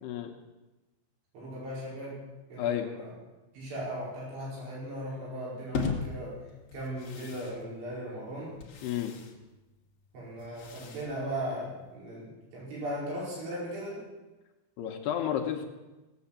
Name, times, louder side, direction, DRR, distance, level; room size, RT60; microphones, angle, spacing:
voice 1, 0.0-0.3 2.6-2.9 8.8-9.2 14.8-15.7, left 10 dB, 75° left, 3 dB, 2.7 m, -31 dB
voice 2, 1.3-2.2 2.5-3.1 3.5-6.4 6.7-8.6 10.1-14.0, right 1 dB, 65° right, -6 dB, 6.9 m, -37 dB
sound 1, 5.7-12.0, left 5 dB, 60° left, 1.8 m, -39 dB
17.5 x 7.8 x 7.2 m, 1.1 s
omnidirectional pair, 5.3 m